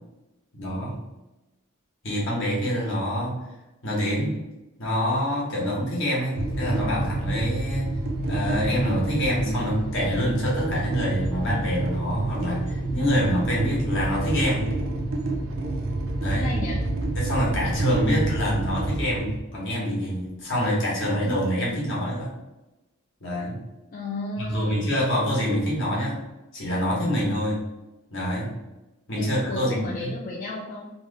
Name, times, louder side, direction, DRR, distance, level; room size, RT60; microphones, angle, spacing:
voice 1, 0.5-1.0 2.0-3.5 3.8-4.4 4.8-7.9 8.3-14.7 16.2-16.5 17.1-22.3 23.2-23.6 24.4-26.2 26.5-27.6 28.1-28.6 29.1-30.1, equal, 65° left, -5 dB, 1.2 m, -26 dB
sound 1, 6.3-19.4, right 2 dB, 85° right, 0.5 m, -28 dB
voice 2, 16.3-16.8 23.9-24.9 29.2-30.9, left 2 dB, 40° left, -3 dB, 0.4 m, -33 dB
3.1 x 2.1 x 3.2 m, 1.0 s
head